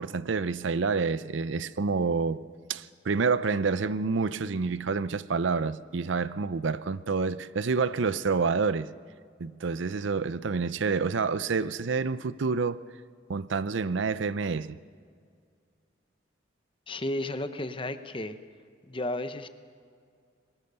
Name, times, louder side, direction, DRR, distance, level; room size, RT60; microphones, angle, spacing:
voice 1, 0.0-2.4 2.7-8.9 9.4-12.8 13.3-14.8, right 4 dB, 75° right, 0.6 m, -28 dB
voice 2, 16.9-18.4 18.9-19.5, left 1 dB, 25° left, 0.8 m, -33 dB
22.5 x 19.5 x 6.8 m
head